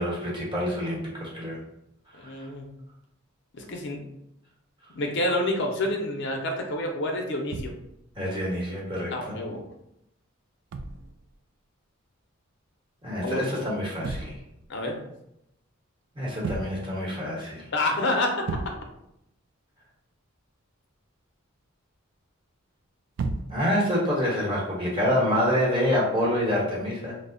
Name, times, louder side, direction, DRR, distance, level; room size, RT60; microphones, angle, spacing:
voice 1, 0.0-1.6 2.4-2.5 8.2-9.3 13.0-14.4 16.1-17.7 23.5-27.2, equal, 25° right, -5 dB, 1.0 m, -27 dB
voice 2, 2.1-2.7 3.5-4.1 4.9-7.7 9.1-9.6 13.2-13.7 14.7-15.1 17.7-18.7, left 1 dB, 60° left, 2 dB, 0.6 m, -28 dB
sound 1, 7.5-8.1 10.7-11.4 13.7-14.7 16.3-17.0 17.4-17.5 17.9-18.0 18.5-19.1 23.2-23.8 25.0-25.2, right 3 dB, 60° right, 0.3 m, -34 dB
3.2 x 2.0 x 3.8 m, 0.80 s
head